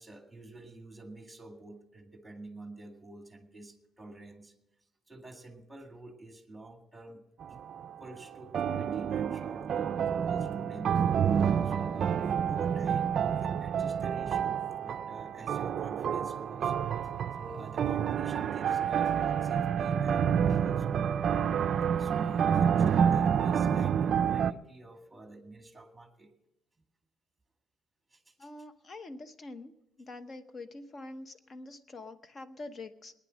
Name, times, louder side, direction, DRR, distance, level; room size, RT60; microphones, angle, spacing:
voice 1, 0.0-4.5 5.1-7.2 7.5-7.6 8.0-11.4 11.6-16.8 17.4-21.1 22.0-26.3 28.1-28.5, right 2 dB, 5° right, 4 dB, 1.9 m, -49 dB
sound 1, 7.4-7.9 8.5-24.5, right 8 dB, 45° right, 0.4 m, -28 dB
voice 2, 28.4-29.7 30.0-33.1, left 2 dB, 35° left, 10 dB, 1.0 m, -45 dB
19.5 x 9.8 x 6.3 m, 0.84 s
cardioid pair, 145°, 0 cm